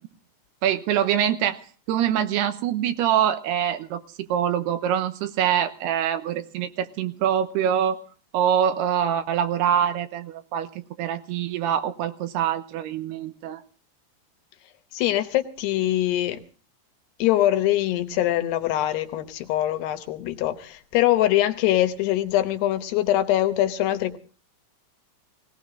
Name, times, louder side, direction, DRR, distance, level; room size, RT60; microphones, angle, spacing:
voice 1, 0.6-1.6 1.9-8.0 8.3-10.7 11.0-13.6, right 9 dB, 80° right, 3.0 m, -24 dB
voice 2, 14.9-16.4 17.2-24.2, left 14 dB, 80° left, 3.0 m, -23 dB
19.0 x 18.5 x 3.8 m
omnidirectional pair, 4.7 m